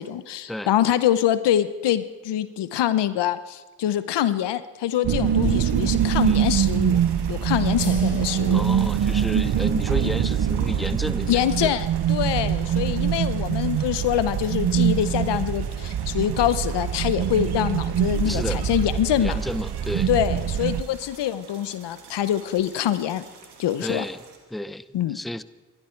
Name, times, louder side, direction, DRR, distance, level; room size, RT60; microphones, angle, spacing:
voice 1, 0.0-7.0 7.3-8.6 11.3-19.4 20.1-23.3 23.6-24.0 24.9-25.2, left 11 dB, 85° left, 14 dB, 0.8 m, -25 dB
sound 1, 5.0-20.8, right 9 dB, 70° right, 0.9 m, -24 dB
sound 2, 5.1-24.4, right 5 dB, 85° right, 2.5 m, -48 dB
voice 2, 6.2-6.5 8.5-11.7 18.3-18.6 19.2-20.1 23.8-24.2 24.5-25.4, left 1 dB, ahead, 15 dB, 0.7 m, -31 dB
sound 3, 7.8-14.9, left 3 dB, 70° left, 5.4 m, -45 dB
27.0 x 12.0 x 4.5 m, 1.2 s
supercardioid pair, 45°, 40 cm